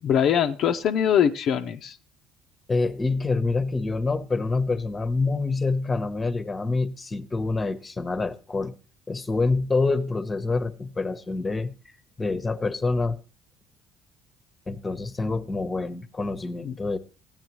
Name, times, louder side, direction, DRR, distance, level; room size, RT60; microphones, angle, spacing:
voice 1, 0.0-2.0 16.6-16.7, left 8 dB, 60° left, 0.6 m, -22 dB
voice 2, 2.7-8.7 9.1-11.9 12.2-13.2 14.7-17.0, left 3 dB, 20° left, 0.9 m, -26 dB
14.5 x 9.0 x 3.0 m
supercardioid pair, 80°, 0 cm